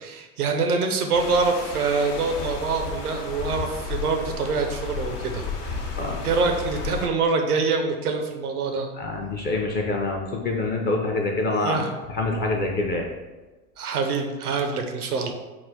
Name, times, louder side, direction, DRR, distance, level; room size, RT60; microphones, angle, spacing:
voice 1, 0.0-5.9 6.2-8.9 11.6-11.9 13.8-15.3, right 4 dB, 90° right, 5 dB, 0.6 m, -25 dB
sound 1, 1.1-7.1, left 4 dB, 50° left, 0.8 m, -33 dB
voice 2, 9.0-11.8 12.1-13.1, left 2 dB, 25° left, 0 dB, 0.4 m, -26 dB
3.8 x 2.2 x 4.5 m, 1.2 s
hypercardioid pair, 85°, 44 cm